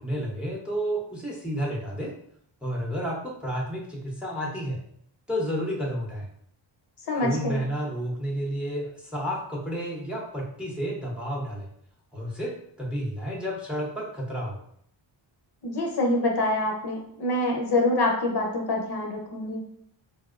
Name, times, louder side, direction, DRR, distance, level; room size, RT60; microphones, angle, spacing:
voice 1, 0.0-2.1 2.6-4.8 5.3-6.3 7.1-11.7 12.1-14.6, equal, ahead, -3 dB, 0.7 m, -31 dB
voice 2, 7.1-7.6 15.6-19.6, left 2 dB, 55° left, 0 dB, 0.7 m, -26 dB
4.0 x 2.0 x 2.4 m, 0.67 s
cardioid pair, 100°, 48 cm